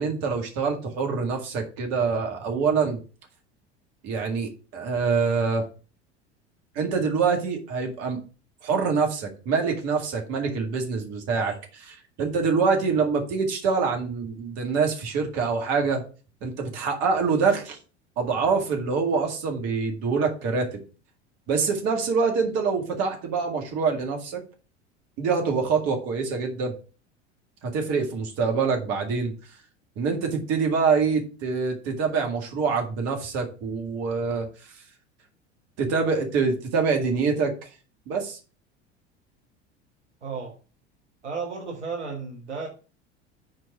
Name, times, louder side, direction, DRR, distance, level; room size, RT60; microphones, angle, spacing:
voice 1, 0.0-3.0 4.0-5.7 6.8-8.2 8.6-16.0 16.4-17.8 18.2-20.8 21.5-24.4 25.2-26.7 27.6-29.3 30.0-34.5 35.8-37.7 38.1-38.4, right 5 dB, 45° right, 3 dB, 2.1 m, -25 dB
voice 2, 40.2-40.5 41.2-42.7, right 5 dB, 75° right, 1 dB, 1.3 m, -33 dB
7.4 x 4.5 x 6.0 m, 0.36 s
figure-of-eight pair, 75°, 35 cm